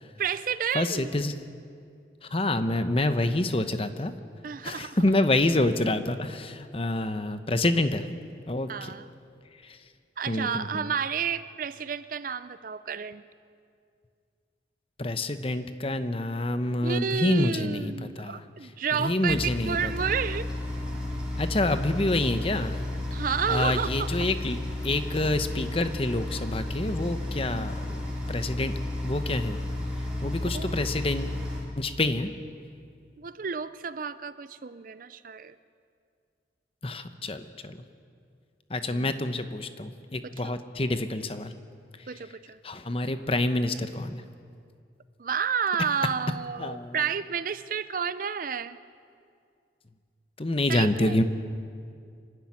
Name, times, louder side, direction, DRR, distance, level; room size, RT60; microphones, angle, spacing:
voice 1, 0.2-1.1 4.4-5.0 8.7-9.1 10.2-13.2 16.8-20.5 23.1-24.3 27.5-27.9 30.5-30.9 33.2-35.6 38.8-39.2 40.2-40.6 42.1-42.6 45.2-48.8 50.7-51.2, right 6 dB, 45° right, 15 dB, 0.5 m, -31 dB
voice 2, 0.7-1.3 2.3-4.1 4.6-8.0 8.5-8.9 10.3-10.9 15.0-18.4 19.0-19.9 21.4-22.8 23.5-24.6 24.8-28.0 28.3-28.7 29.0-29.6 30.2-31.4 31.8-32.3 36.8-37.8 38.7-41.5 42.6-44.2 46.6-47.0 50.4-51.2, left 2 dB, 30° left, 10 dB, 0.9 m, -27 dB
sound 1, 19.3-31.6, left 1 dB, 5° right, 3.6 m, -33 dB
25.5 x 12.0 x 9.7 m, 2.3 s
head